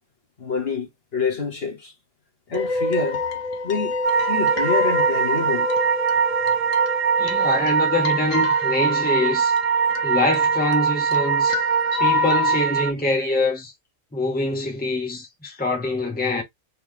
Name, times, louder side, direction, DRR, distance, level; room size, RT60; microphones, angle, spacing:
voice 1, 0.4-1.9 2.5-3.2 3.6-5.7 9.9-10.1, left 5 dB, 55° left, 1.5 m, -27 dB
sound 1, 2.5-12.6, left 4 dB, 80° left, 1.3 m, -28 dB
sound 2, 4.0-12.9, right 7 dB, 60° right, 0.7 m, -22 dB
voice 2, 7.2-9.5 10.0-11.6 12.0-13.7 14.1-16.4, left 2 dB, 10° left, 1.1 m, -24 dB
3.9 x 3.3 x 3.1 m
omnidirectional pair, 1.3 m